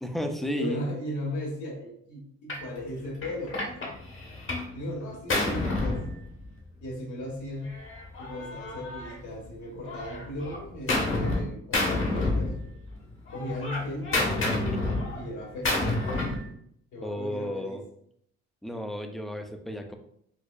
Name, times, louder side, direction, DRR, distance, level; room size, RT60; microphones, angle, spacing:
voice 1, 0.0-0.8 17.0-17.8 18.6-19.9, equal, ahead, 5 dB, 0.4 m, -33 dB
voice 2, 0.5-3.9 4.7-6.0 6.8-7.7 8.2-12.5 13.3-14.8 15.2-15.9 16.9-17.8, left 1 dB, 75° left, -1 dB, 1.2 m, -37 dB
Gunshot gunfire, 2.5-2.7 3.2-4.7 5.0-6.7 7.7-9.5 9.9-11.4 11.7-13.0 13.3-16.5, left 2 dB, 45° left, 1.0 m, -29 dB
4.5 x 2.3 x 2.3 m, 0.70 s
cardioid pair, 90°, 30 cm